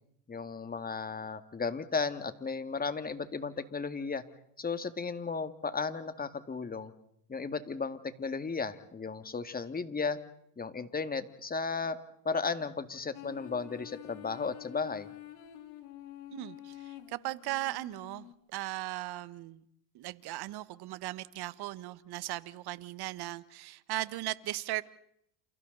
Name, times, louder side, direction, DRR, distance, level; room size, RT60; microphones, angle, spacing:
voice 1, 0.3-4.2 4.6-6.9 7.3-10.2 10.6-12.0 12.2-15.1, left 4 dB, 20° left, 11 dB, 2.0 m, -35 dB
sound 1, 13.1-18.3, left 14 dB, 80° left, 3.4 m, -48 dB
voice 2, 16.3-19.6 19.9-24.8, right 17 dB, 55° right, 16 dB, 1.4 m, -38 dB
29.0 x 29.0 x 4.0 m, 0.73 s
supercardioid pair, 95°, 47 cm